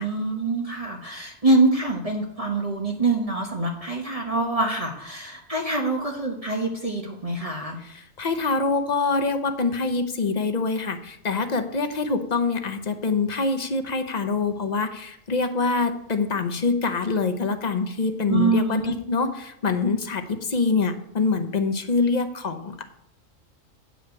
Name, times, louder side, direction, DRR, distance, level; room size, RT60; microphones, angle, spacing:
voice 1, 0.0-7.8 18.3-18.9, right 2 dB, 30° right, 0 dB, 1.1 m, -25 dB
voice 2, 7.8-22.8, left 4 dB, 40° left, 7 dB, 0.8 m, -25 dB
8.8 x 5.0 x 6.9 m, 0.77 s
omnidirectional pair, 1.3 m